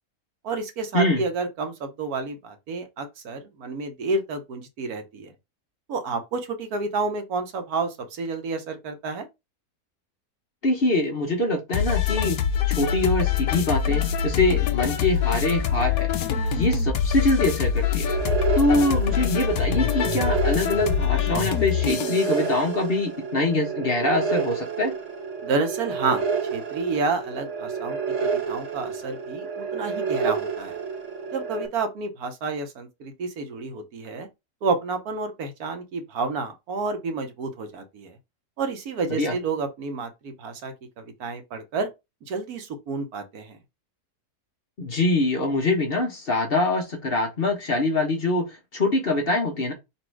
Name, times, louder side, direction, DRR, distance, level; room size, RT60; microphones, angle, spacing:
voice 1, 0.4-5.3 5.9-9.3 25.4-26.3 26.5-30.8 31.3-34.3 34.6-38.2 38.6-41.9 42.3-43.6, right 4 dB, 70° right, 1.4 m, -30 dB
voice 2, 10.6-12.4 12.7-16.1 16.5-18.1 18.5-24.9 39.1-39.3 44.8-49.7, left 2 dB, 45° left, 1.0 m, -24 dB
sound 1, 11.7-22.3, left 8 dB, 70° left, 1.1 m, -24 dB
sound 2, 18.1-31.7, right 5 dB, 55° right, 1.1 m, -29 dB
4.1 x 2.6 x 4.5 m
omnidirectional pair, 1.7 m